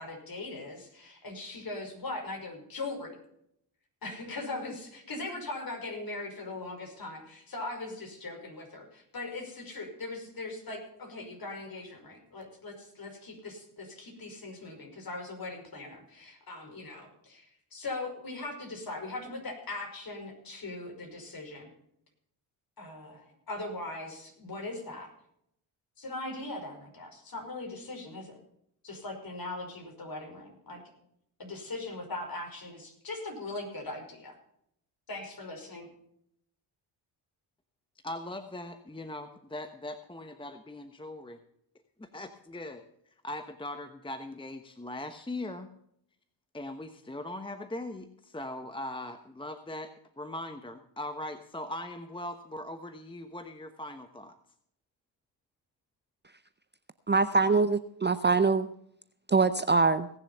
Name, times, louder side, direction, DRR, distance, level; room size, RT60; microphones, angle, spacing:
voice 1, 0.0-3.2 4.0-21.7 22.8-25.1 26.0-28.4 28.8-30.8 31.4-34.4 35.1-35.9, left 2 dB, 45° left, 2 dB, 5.5 m, -40 dB
voice 2, 38.0-41.4 42.0-45.7 46.5-54.4, left 1 dB, 10° left, 8 dB, 1.1 m, -40 dB
voice 3, 57.1-58.7 59.3-60.1, right 4 dB, 20° right, 12 dB, 0.6 m, -24 dB
18.0 x 7.1 x 5.6 m, 0.72 s
supercardioid pair, 60°, 50 cm